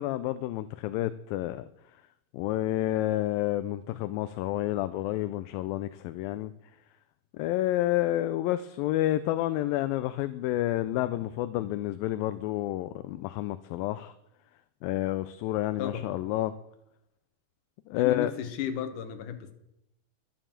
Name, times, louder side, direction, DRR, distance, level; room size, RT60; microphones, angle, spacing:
voice 1, 0.0-1.7 2.3-6.5 7.3-14.1 14.8-16.5 17.9-18.3, left 14 dB, 80° left, 2.3 m, -29 dB
voice 2, 17.9-19.5, left 9 dB, 65° left, 2.6 m, -34 dB
11.5 x 8.9 x 7.4 m
omnidirectional pair, 4.2 m